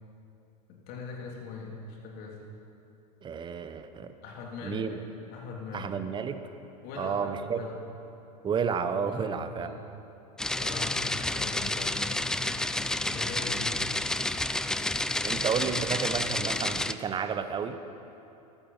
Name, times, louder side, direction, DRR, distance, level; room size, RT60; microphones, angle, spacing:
voice 1, 0.7-2.4 4.2-5.9 6.8-7.8 9.0-9.8 10.6-12.3 13.0-13.8, left 4 dB, 50° left, 0 dB, 2.7 m, -41 dB
voice 2, 3.2-4.1 4.6-5.0 5.7-6.4 7.0-7.6 8.4-9.7 15.2-17.8, right 6 dB, 25° right, 10 dB, 0.8 m, -31 dB
sound 1, 10.4-16.9, left 2 dB, 5° left, 0.3 m, -30 dB
14.5 x 13.0 x 5.3 m, 2.9 s
hypercardioid pair, 95°, 20 cm